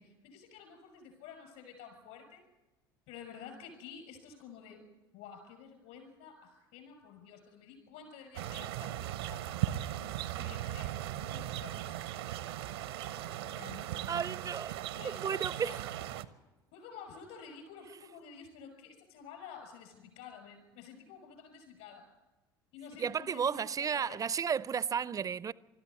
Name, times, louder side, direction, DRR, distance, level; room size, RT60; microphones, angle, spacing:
voice 1, 0.0-2.4 3.1-4.8 5.1-9.4 10.3-14.2 14.4-15.8 16.7-22.1 22.7-23.6 23.9-24.2, left 7 dB, 60° left, 6.3 m, -51 dB
sound 1, 8.3-16.2, right 13 dB, 70° right, 0.8 m, -38 dB
voice 2, 14.1-14.7 15.0-15.9 23.0-25.5, right 7 dB, 25° right, 0.6 m, -33 dB
20.5 x 13.5 x 9.6 m
figure-of-eight pair, 65°, 13 cm